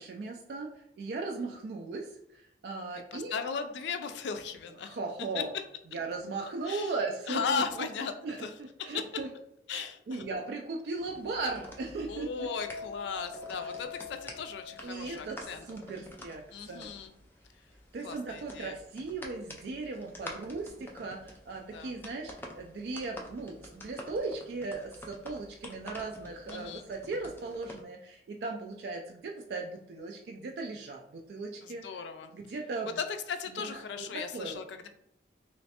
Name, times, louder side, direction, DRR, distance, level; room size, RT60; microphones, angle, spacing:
voice 1, 0.0-3.3 4.8-5.5 5.9-7.9 8.2-9.3 9.7-12.5 13.6-13.7 14.8-16.9 17.9-31.8 32.3-33.0 33.5-34.6, right 3 dB, 70° right, 0 dB, 0.3 m, -38 dB
voice 2, 3.1-5.0 5.3-5.4 6.7-6.9 7.3-8.1 8.4-8.5 8.8-8.9 9.7-10.3 12.1-15.7 16.5-17.1 18.0-18.7 21.7-21.9 26.5-26.9 31.6-32.3 33.0-34.9, left 6 dB, 85° left, 8 dB, 0.4 m, -36 dB
sound 1, 10.9-27.8, left 1 dB, 10° left, 0.3 m, -49 dB
sound 2, 12.4-15.2, left 4 dB, 10° right, 1.4 m, -43 dB
3.1 x 3.0 x 2.8 m, 0.78 s
head